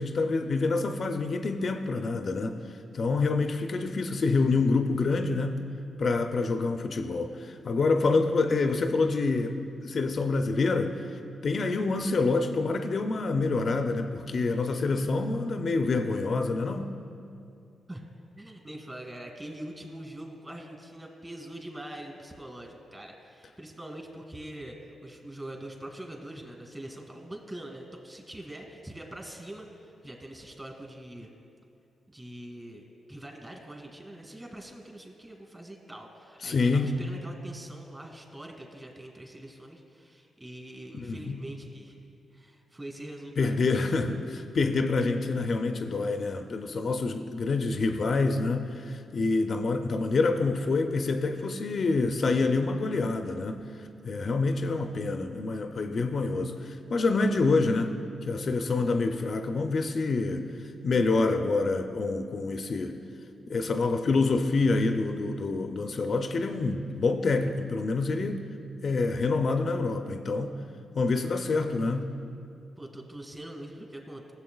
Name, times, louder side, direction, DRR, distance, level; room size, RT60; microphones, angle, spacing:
voice 1, 0.0-2.6 2.9-5.6 6.0-9.6 9.8-16.9 36.4-36.9 40.9-41.4 43.4-53.6 54.0-57.9 58.2-60.5 60.8-63.0 63.5-68.4 68.8-70.5 70.9-72.1, left 3 dB, 55° left, 6 dB, 0.5 m, -27 dB
voice 2, 18.4-31.3 32.1-42.1 42.3-43.7 72.8-74.3, right 1 dB, 20° right, 1 dB, 2.0 m, -43 dB
16.0 x 7.1 x 2.3 m, 2.5 s
supercardioid pair, 55°, 0 cm